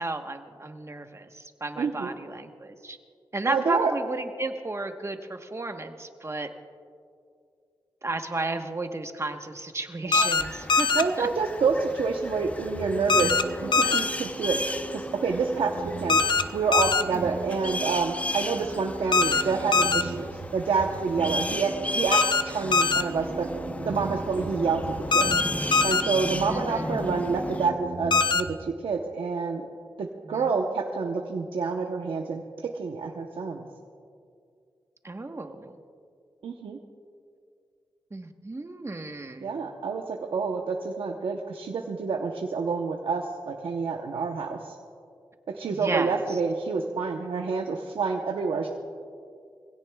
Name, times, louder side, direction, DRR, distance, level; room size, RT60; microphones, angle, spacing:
voice 1, 0.0-3.0 3.3-6.5 8.0-10.9 11.2-11.3 17.1-17.4 23.2-23.8 26.5-27.1 30.2-30.5 35.0-35.8 38.1-39.6 45.7-46.4, right 2 dB, 30° right, 6 dB, 1.1 m, -33 dB
voice 2, 1.8-2.1 3.5-3.9 10.1-10.3 10.9-16.2 16.5-22.2 22.4-23.5 23.8-24.8 25.1-25.3 25.8-29.7 30.0-32.4 32.7-33.7 36.4-36.8 39.4-44.7 45.5-48.7, right 4 dB, 90° right, 1 dB, 0.9 m, -28 dB
sound 1, 10.1-10.4 10.7-11.0 13.1-13.4 13.7-14.0 16.1-16.4 16.7-17.0 19.1-19.4 19.7-20.0 22.1-22.4 22.7-23.0 25.1-25.4 25.7-26.0 28.1-28.4, left 4 dB, 60° left, 0.6 m, -21 dB
sound 2, 10.4-27.7, left 2 dB, 15° left, 0.7 m, -35 dB
sound 3, 12.7-28.7, right 4 dB, 50° right, 0.7 m, -39 dB
23.0 x 16.5 x 2.3 m, 2.3 s
cardioid pair, 65°, 9 cm